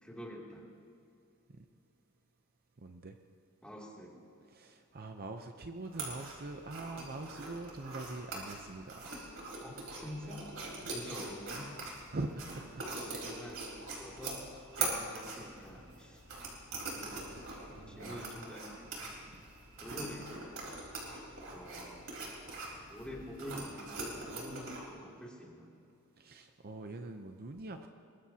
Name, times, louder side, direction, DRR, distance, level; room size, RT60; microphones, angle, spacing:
voice 1, 0.0-0.6 3.6-4.1 9.6-10.5 10.9-11.7 13.0-14.4 14.7-16.2 16.9-17.5 17.9-19.3 19.8-20.5 21.5-22.0 22.9-25.7, equal, 5° left, -3 dB, 2.8 m, -47 dB
voice 2, 2.8-3.2 4.5-9.2 10.8-10.9 12.1-12.9 16.0-16.2 17.6-18.2 26.2-27.9, right 2 dB, 45° right, 6 dB, 0.7 m, -43 dB
sound 1, 5.8-24.9, right 3 dB, 65° right, 4.3 m, -43 dB
23.0 x 21.0 x 2.9 m, 2.6 s
head